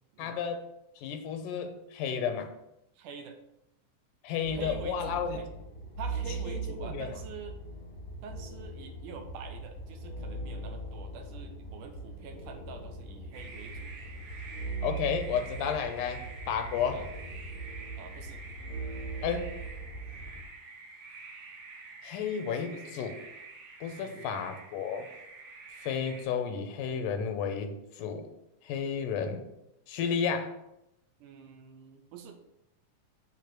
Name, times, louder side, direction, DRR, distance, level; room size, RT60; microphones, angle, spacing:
voice 1, 0.2-0.6 1.0-2.5 4.2-5.4 6.5-7.1 14.8-17.0 19.2-19.5 22.0-23.1 23.8-25.1 25.8-28.3 28.6-29.4 29.9-30.5, left 7 dB, 80° left, 6 dB, 2.3 m, -32 dB
voice 2, 3.0-3.4 4.5-5.5 6.0-7.6 8.2-13.9 16.9-17.1 18.0-18.4 22.5-22.9 23.9-24.4 31.2-32.4, right 6 dB, 75° right, 5 dB, 2.3 m, -46 dB
sound 1, 4.4-20.4, right 3 dB, 55° left, 1.0 m, -40 dB
sound 2, 13.3-26.2, right 3 dB, 55° right, 2.2 m, -48 dB
8.4 x 3.7 x 6.5 m, 0.85 s
omnidirectional pair, 3.9 m